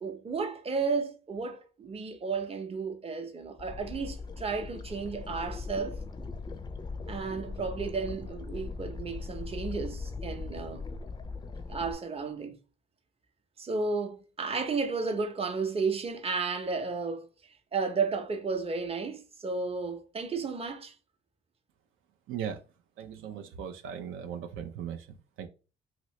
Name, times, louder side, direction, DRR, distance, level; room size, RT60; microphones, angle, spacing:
voice 1, 0.0-5.9 7.1-10.8 11.7-12.6 13.6-17.3 17.7-20.9, right 4 dB, 30° right, 0.7 m, -33 dB
sound 1, 3.6-11.9, left 4 dB, 20° left, 0.4 m, -39 dB
voice 2, 22.3-22.6 23.0-25.5, right 8 dB, 85° right, 0.5 m, -38 dB
2.9 x 2.8 x 3.1 m
cardioid pair, 90°, 20 cm